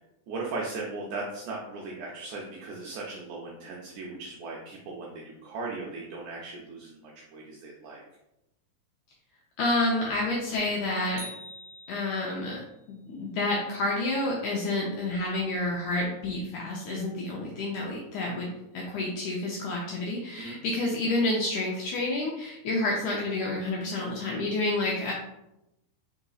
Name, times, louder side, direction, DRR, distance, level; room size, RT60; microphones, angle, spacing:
voice 1, 0.3-8.0 20.4-20.6, right 3 dB, 80° right, -3 dB, 1.7 m, -38 dB
voice 2, 9.6-11.3 11.9-12.6 12.9-25.1, left 2 dB, 80° left, -2 dB, 1.7 m, -29 dB
sound 1, 11.2-12.6, right 1 dB, 60° right, 1.4 m, -45 dB
4.9 x 3.9 x 2.3 m, 0.89 s
omnidirectional pair, 4.1 m